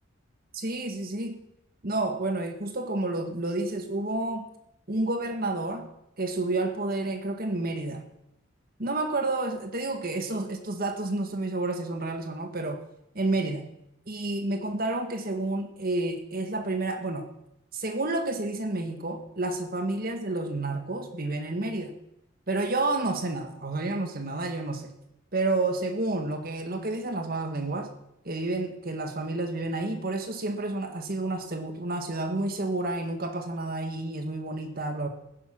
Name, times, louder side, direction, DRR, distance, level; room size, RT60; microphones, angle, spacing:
voice 1, 0.5-1.4 1.8-4.5 4.9-5.9 6.2-8.0 8.8-12.8 13.2-13.7 14.1-17.3 17.7-22.0 22.5-24.9 25.3-27.9 28.3-35.1, right 2 dB, 45° right, 6 dB, 1.7 m, -30 dB
15.0 x 10.5 x 6.1 m, 0.82 s
head